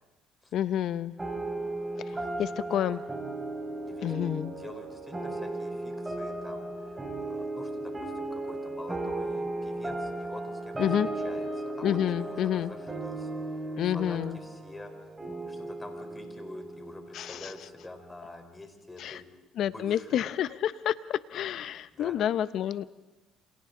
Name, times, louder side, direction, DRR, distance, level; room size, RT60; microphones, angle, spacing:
voice 1, 0.5-1.1 2.1-3.0 4.0-4.6 10.8-11.1 11.8-12.7 13.8-14.4 17.1-17.5 19.0-19.2 19.6-22.8, left 10 dB, 60° left, 15 dB, 0.8 m, -29 dB
sound 1, 1.2-18.0, right 2 dB, 15° right, 4.8 m, -36 dB
voice 2, 2.1-3.0 3.8-4.1 4.5-10.8 11.0-13.3 13.8-14.9 15.4-19.3 19.6-20.2 21.9-22.2, left 2 dB, 15° left, 5 dB, 4.1 m, -47 dB
29.0 x 26.5 x 3.9 m, 1.1 s
cardioid pair, 100°, 0 cm